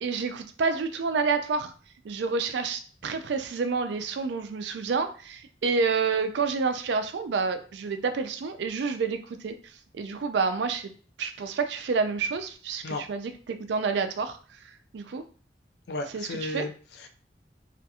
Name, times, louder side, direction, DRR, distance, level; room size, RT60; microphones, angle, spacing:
voice 1, 0.0-1.7 2.0-9.5 9.9-10.9 11.2-14.4 14.9-15.2 16.1-16.7, right 4 dB, 80° right, 8 dB, 0.4 m, -28 dB
voice 2, 15.9-17.1, left 2 dB, 65° left, 5 dB, 0.4 m, -34 dB
2.7 x 2.4 x 2.3 m, 0.40 s
head